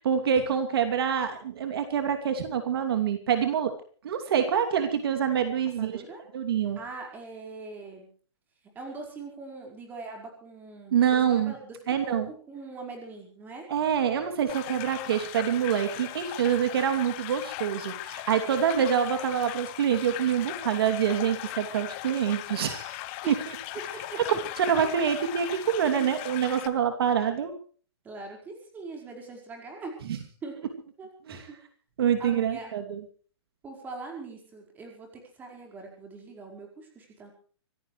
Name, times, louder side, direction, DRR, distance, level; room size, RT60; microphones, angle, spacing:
voice 1, 0.0-3.7 4.0-5.9 6.3-6.8 10.9-11.5 11.9-12.2 13.7-23.0 23.3-23.4 24.6-27.5 31.3-31.4 32.0-33.0, right 8 dB, 55° right, 6 dB, 2.8 m, -26 dB
voice 2, 5.8-6.2 6.7-8.1 8.7-13.7 23.2-23.3 23.7-24.2 24.5-24.9 25.9-26.1 28.0-30.0 30.4-30.6 31.0-31.1 31.5-31.6 32.2-32.7 33.6-37.3, right 3 dB, 10° right, 2 dB, 4.8 m, -42 dB
sound 1, 14.5-26.7, left 16 dB, 25° left, 1.2 m, -39 dB
25.5 x 16.0 x 3.3 m, 0.44 s
hypercardioid pair, 165°, 15 cm